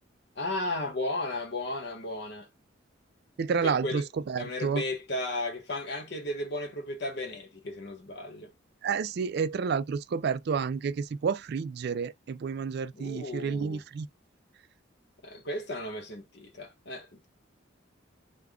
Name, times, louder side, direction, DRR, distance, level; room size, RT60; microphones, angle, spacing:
voice 1, 0.4-2.5 3.6-4.0 4.4-8.5 12.9-13.8 15.2-17.3, left 2 dB, 60° left, 1.1 m, -34 dB
voice 2, 3.4-4.8 8.8-14.1, right 6 dB, 55° right, 0.3 m, -30 dB
3.5 x 2.1 x 3.6 m
head